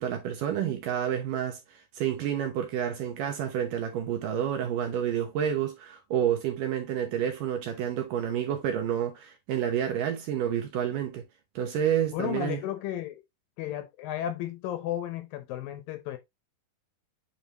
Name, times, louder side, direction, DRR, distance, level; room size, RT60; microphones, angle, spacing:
voice 1, 0.0-11.2 11.6-12.6, right 9 dB, 70° right, 2.1 m, -29 dB
voice 2, 12.1-13.2 13.6-16.2, left 11 dB, 75° left, 2.2 m, -33 dB
8.8 x 4.0 x 2.9 m
omnidirectional pair, 4.6 m